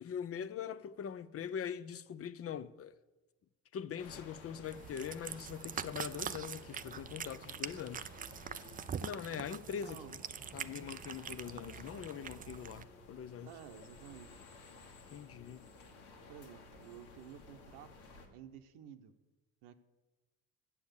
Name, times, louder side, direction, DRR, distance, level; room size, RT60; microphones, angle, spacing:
voice 1, 0.0-2.9 3.7-8.1 9.0-10.0 10.5-13.5 15.1-15.7, left 8 dB, 35° left, 0.5 m, -42 dB
sound 1, 4.0-18.3, left 2 dB, 80° left, 1.7 m, -55 dB
Cat, 4.6-12.8, right 8 dB, 20° right, 0.3 m, -44 dB
voice 2, 9.7-10.2 13.5-14.4 16.3-19.1 19.6-19.8, right 9 dB, 70° right, 0.9 m, -53 dB
7.3 x 6.9 x 8.1 m
hypercardioid pair, 60°, 44 cm